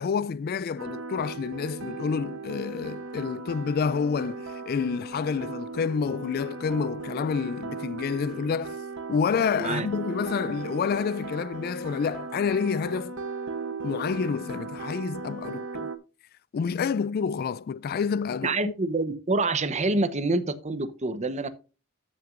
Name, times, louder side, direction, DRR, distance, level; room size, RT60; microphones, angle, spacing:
voice 1, 0.0-8.8 9.1-13.2 13.8-15.9 16.5-18.7, left 6 dB, 45° left, 0.3 m, -28 dB
sound 1, 0.8-16.0, right 3 dB, 65° right, 1.0 m, -37 dB
voice 2, 18.4-21.5, right 2 dB, 35° right, 0.9 m, -27 dB
13.5 x 5.9 x 2.5 m
head